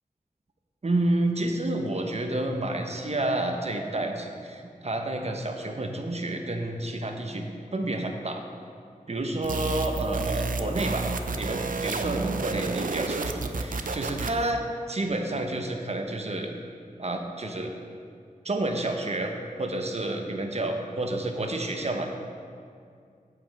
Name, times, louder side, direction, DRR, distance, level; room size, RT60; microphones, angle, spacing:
voice 1, 0.8-7.5 7.7-8.4 9.1-11.1 11.4-16.5 17.0-17.7 18.4-19.3 19.6-22.1, right 2 dB, 45° right, 4 dB, 1.0 m, -29 dB
sound 1, 9.4-14.5, right 3 dB, 70° right, 0.6 m, -30 dB
8.4 x 7.9 x 4.8 m, 2.3 s
wide cardioid pair, 55°, 15 cm